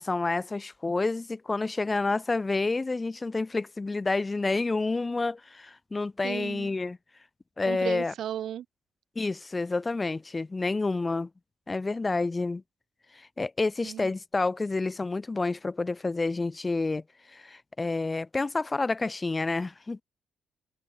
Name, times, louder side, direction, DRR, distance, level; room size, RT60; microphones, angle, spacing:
voice 1, 0.0-7.0 7.6-8.1 9.2-11.3 11.7-12.6 13.1-17.0 17.3-20.0, left 3 dB, 25° left, 0.5 m, -29 dB
voice 2, 6.2-6.7 7.7-8.7 13.8-14.1, right 10 dB, 70° right, 0.6 m, -35 dB
cardioid pair, 90°, 0 cm